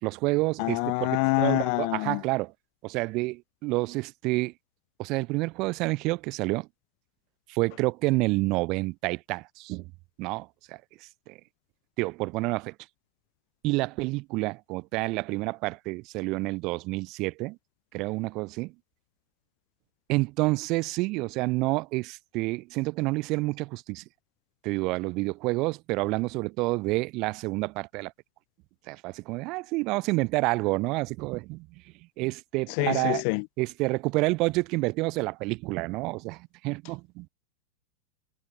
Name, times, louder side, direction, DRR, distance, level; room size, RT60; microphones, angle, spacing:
voice 1, 0.0-1.1 1.4-2.5 2.8-4.5 5.0-6.7 7.5-9.9 10.2-11.4 12.0-12.7 13.6-17.6 17.9-18.7 20.1-24.0 24.6-28.1 28.9-31.7 32.2-33.2 33.6-37.3, right 23 dB, 40° right, 2.0 m, -29 dB
voice 2, 0.6-2.2 32.8-33.4, left 40 dB or more, 45° left, 0.3 m, -26 dB
figure-of-eight pair, 90°, 0 cm